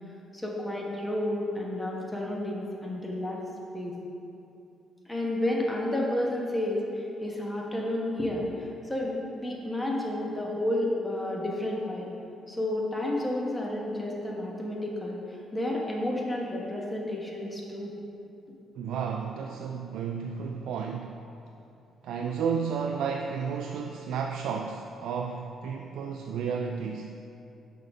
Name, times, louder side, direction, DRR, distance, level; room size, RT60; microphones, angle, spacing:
voice 1, 0.3-3.4 3.7-3.9 5.1-12.1 12.5-17.9, left 1 dB, 10° left, -2 dB, 1.2 m, -31 dB
voice 2, 18.8-21.2 22.0-27.1, right 6 dB, 80° right, 3 dB, 0.3 m, -32 dB
6.4 x 3.9 x 5.3 m, 2.7 s
cardioid pair, 90°, 0 cm